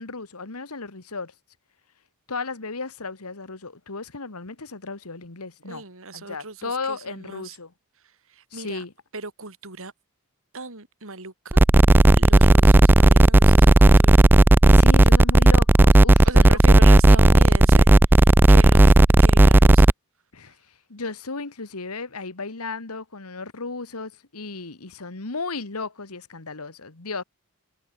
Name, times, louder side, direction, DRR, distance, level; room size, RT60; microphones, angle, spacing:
voice 1, 0.0-1.3 2.3-5.8 6.1-7.7 8.5-8.9 14.7-16.6 17.1-17.5 20.3-27.2, left 4 dB, 80° left, 1.8 m, -35 dB
voice 2, 5.6-7.6 8.3-8.8 9.1-9.9 10.5-11.7 12.2-14.2 16.2-17.9 18.2-18.9 19.2-19.9, right 3 dB, 65° right, 4.9 m, -37 dB
sound 1, 11.5-19.9, right 1 dB, 10° right, 0.3 m, -13 dB
head